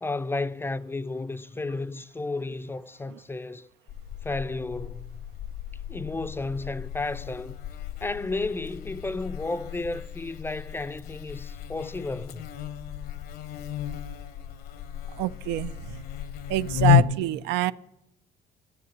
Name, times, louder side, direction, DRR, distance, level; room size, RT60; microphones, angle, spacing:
voice 1, 0.0-3.7 4.2-5.2 5.9-7.6 8.0-12.5, left 3 dB, 15° left, 0.4 m, -32 dB
Buzz, 3.9-17.0, left 10 dB, 65° left, 0.8 m, -31 dB
voice 2, 15.1-15.9 16.5-17.7, right 15 dB, 85° right, 0.4 m, -26 dB
12.5 x 7.9 x 7.8 m
cardioid pair, 110°, 17 cm